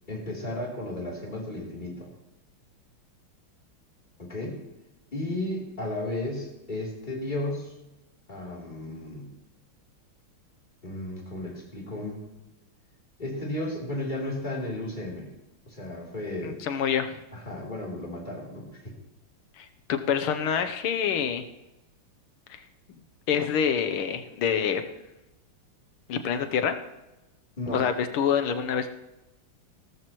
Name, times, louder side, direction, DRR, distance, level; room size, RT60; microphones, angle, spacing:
voice 1, 0.1-2.1 4.2-4.6 5.1-7.7 8.3-9.3 10.8-12.2 13.2-15.3 15.7-16.6 17.3-19.0 27.6-27.9, left 1 dB, 20° left, -4 dB, 3.6 m, -34 dB
voice 2, 16.4-17.2 19.6-21.4 22.5-22.6 23.3-24.8 26.1-26.8 27.7-28.9, left 7 dB, 80° left, 8 dB, 1.8 m, -26 dB
17.0 x 13.5 x 3.1 m, 0.98 s
omnidirectional pair, 2.4 m